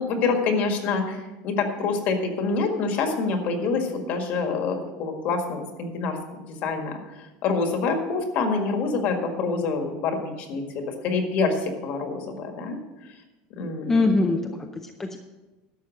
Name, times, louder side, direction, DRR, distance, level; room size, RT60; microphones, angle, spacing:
voice 1, 0.0-12.8 13.6-14.1, left 4 dB, 45° left, 5 dB, 1.8 m, -26 dB
voice 2, 13.8-15.2, left 3 dB, 10° left, 4 dB, 0.5 m, -23 dB
11.5 x 7.2 x 6.4 m, 1.1 s
cardioid pair, 170°, 4 cm